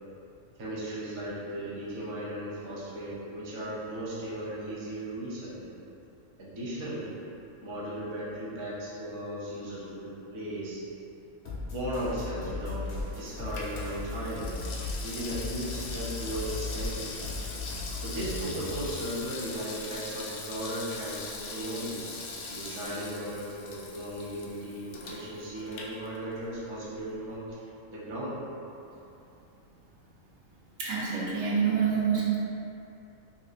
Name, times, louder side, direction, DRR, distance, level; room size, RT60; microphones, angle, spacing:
voice 1, 0.6-5.7 6.4-7.1 7.6-10.8 11.7-12.9 13.1-14.6 15.0-17.3 18.0-22.1 22.5-28.4, right 1 dB, 40° right, -8 dB, 0.4 m, -36 dB
sound 1, 11.4-19.1, left 3 dB, 50° left, 0.8 m, -37 dB
Water tap faucet / Sink (filling or washing), 12.3-26.6 26.9-27.0, left 3 dB, 80° left, 1.0 m, -41 dB
voice 2, 30.8-32.4, right 6 dB, 70° right, -6 dB, 1.0 m, -26 dB
4.0 x 2.6 x 2.5 m, 2.8 s
omnidirectional pair, 1.5 m